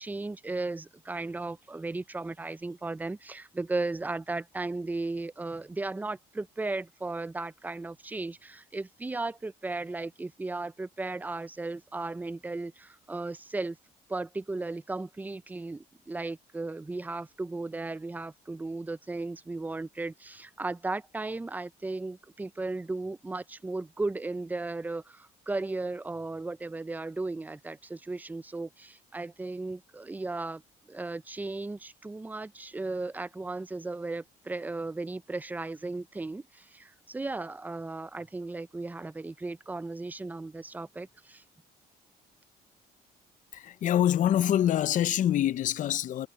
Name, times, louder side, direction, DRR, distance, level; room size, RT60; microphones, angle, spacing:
voice 1, 0.0-13.8 14.1-30.6 30.9-41.4, right 3 dB, 10° right, 0.5 m, -36 dB
voice 2, 43.5-46.3, left 11 dB, 50° left, 0.6 m, -25 dB
cardioid pair, 110°, 17 cm